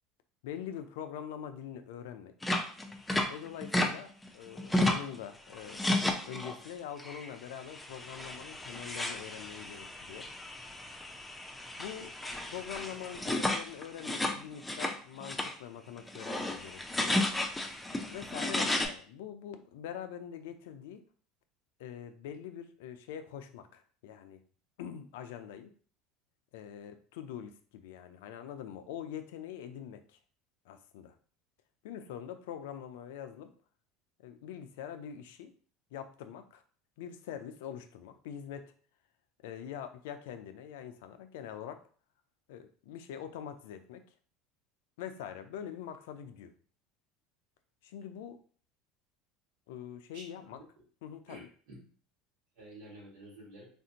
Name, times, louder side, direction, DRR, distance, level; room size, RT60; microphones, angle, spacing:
voice 1, 0.4-2.3 3.3-5.8 6.3-10.3 11.8-12.1 12.5-17.2 18.1-21.0 21.8-24.4 24.8-25.7 26.5-30.2 30.7-31.1 31.8-33.5 34.2-35.5 35.9-36.6 37.0-38.7 39.4-41.8 42.5-44.0 45.0-46.5 47.8-48.4 49.7-50.6 51.0-51.5, left 9 dB, 75° left, 9 dB, 0.4 m, -44 dB
sound 1, 2.4-3.9 4.2-5.2 5.5-6.7 7.0-7.3 7.7-14.9 15.2-15.5 16.0-18.9, left 1 dB, 10° left, 0.6 m, -33 dB
voice 2, 50.1-50.6 51.3-51.8 52.6-53.7, right 1 dB, 75° right, -2 dB, 1.6 m, -50 dB
3.4 x 2.6 x 2.8 m, 0.43 s
hypercardioid pair, 90°, 0 cm